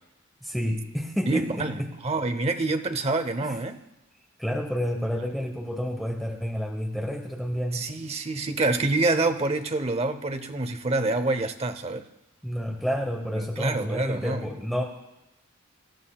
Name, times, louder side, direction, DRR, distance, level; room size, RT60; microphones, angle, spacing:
voice 1, 0.4-1.9 3.4-3.6 4.4-7.8 12.4-14.8, equal, ahead, 1.1 m, -30 dB
voice 2, 1.3-3.8 7.7-12.1 13.3-14.4, right 2 dB, 30° right, 0.8 m, -27 dB
26.0 x 13.5 x 2.4 m
head